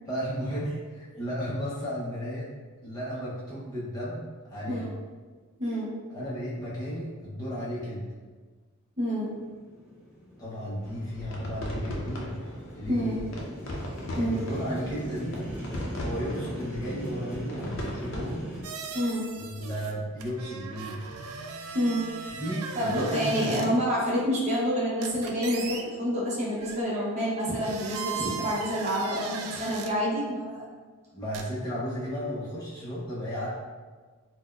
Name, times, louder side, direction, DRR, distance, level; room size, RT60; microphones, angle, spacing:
voice 1, 0.1-2.5 2.8-4.9 6.1-8.0 10.4-12.3 12.7-13.3 14.2-15.4 16.0-18.5 19.3-21.0 22.3-23.8 31.1-33.5, equal, 15° left, -8 dB, 0.6 m, -34 dB
voice 2, 5.6-6.0 9.0-9.4 12.9-13.2 14.2-14.3 18.9-19.3 21.7-22.0 22.8-30.6, equal, 30° right, -6 dB, 0.6 m, -28 dB
Motorcycle, 9.3-18.6, equal, 10° right, 1.0 m, -40 dB
sound 1, 10.8-18.4, left 1 dB, 60° left, 0.5 m, -38 dB
sound 2, 18.6-19.9 20.2-23.7 25.0-25.8 26.6-26.8 27.5-29.9 31.3-31.4, right 6 dB, 70° right, 0.3 m, -38 dB
4.0 x 2.1 x 2.3 m, 1.4 s
head